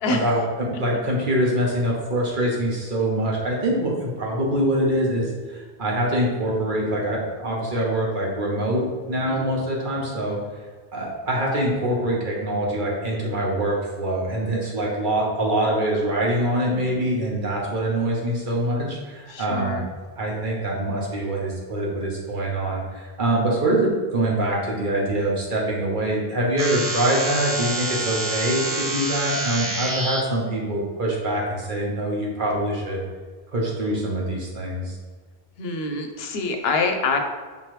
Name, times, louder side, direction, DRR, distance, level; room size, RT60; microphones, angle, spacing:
voice 1, 0.1-10.4 10.9-19.8 20.2-33.0 33.5-35.0, right 1 dB, 55° right, -3 dB, 1.1 m, -24 dB
voice 2, 19.3-19.9 35.6-37.2, left 3 dB, 80° left, 5 dB, 0.8 m, -25 dB
sound 1, 26.6-30.2, right 2 dB, 30° right, 0.4 m, -27 dB
5.4 x 3.1 x 3.1 m, 1.4 s
omnidirectional pair, 1.0 m